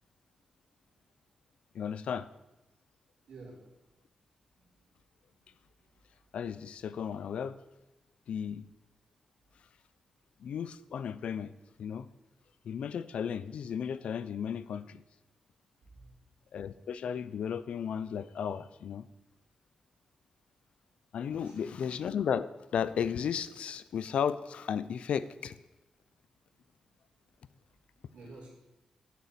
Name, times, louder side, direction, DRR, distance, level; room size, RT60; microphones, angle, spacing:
voice 1, 1.7-2.3 6.3-7.6 8.3-8.7 10.4-11.5 11.8-12.1 12.6-15.0 16.5-19.1 21.1-25.6, left 7 dB, 75° left, 15 dB, 0.5 m, -34 dB
voice 2, 3.3-3.7 4.6-4.8 5.3-5.4 15.8-16.2 21.3-21.8 26.7-26.8 28.1-28.5, right 3 dB, 75° right, -4 dB, 4.2 m, -52 dB
10.5 x 7.0 x 8.2 m, 1.0 s
wide cardioid pair, 175°, 2 cm